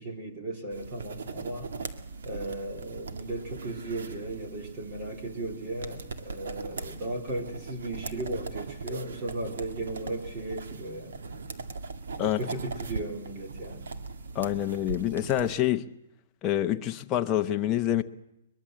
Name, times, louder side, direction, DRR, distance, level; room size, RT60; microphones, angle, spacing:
voice 1, 0.0-1.7 2.2-11.2 12.2-13.9, right 2 dB, 20° right, 3.0 m, -36 dB
sound 1, 0.7-15.5, right 4 dB, 80° right, 2.0 m, -40 dB
voice 2, 14.3-15.8 16.4-18.0, left 12 dB, 15° left, 0.8 m, -26 dB
23.0 x 21.5 x 7.5 m
hypercardioid pair, 175°, 0 cm